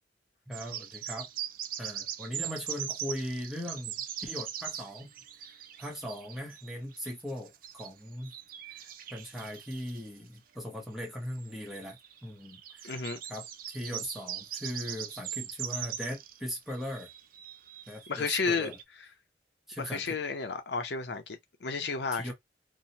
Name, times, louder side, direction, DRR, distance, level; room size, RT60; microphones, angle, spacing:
voice 1, 0.5-1.3 1.8-5.1 5.4-8.3 8.7-12.9 13.3-17.1 17.9-18.8 19.7-20.2 22.1-22.3, equal, ahead, 0.8 m, -39 dB
sound 1, 0.5-7.9 8.2-10.1 11.0-16.4 16.7-18.8, right 10 dB, 50° right, 0.4 m, -41 dB
voice 2, 12.8-13.2 18.1-18.7 19.8-22.3, left 4 dB, 65° left, 0.6 m, -32 dB
2.8 x 2.1 x 2.8 m
head